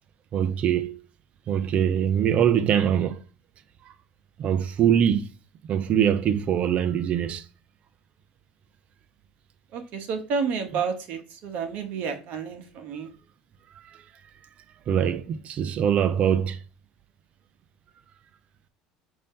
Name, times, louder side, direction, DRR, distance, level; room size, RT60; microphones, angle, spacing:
voice 1, 0.3-1.0 1.5-3.2 4.4-5.3 5.7-7.4 14.9-16.6, right 9 dB, 45° right, 0.5 m, -23 dB
voice 2, 9.7-13.1, right 5 dB, 60° right, 1.0 m, -30 dB
5.3 x 2.7 x 3.6 m
supercardioid pair, 85°, 3 cm